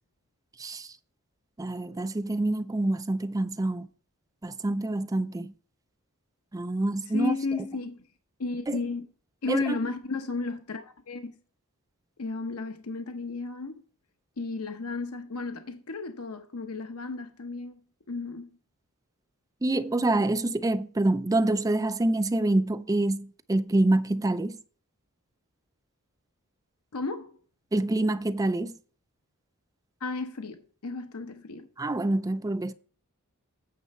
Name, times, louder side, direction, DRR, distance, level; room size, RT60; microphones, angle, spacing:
voice 1, 0.6-1.0 1.6-3.9 4.4-5.5 6.5-7.7 8.7-8.8 9.5-9.9 19.6-24.6 27.7-28.8 31.8-32.7, right 2 dB, 15° right, 0.4 m, -26 dB
voice 2, 7.1-8.0 8.4-9.0 9.4-11.3 12.2-13.8 14.4-17.8 18.1-18.5 26.9-27.4 30.0-31.7, left 3 dB, 85° left, 0.9 m, -33 dB
9.3 x 6.7 x 4.2 m
head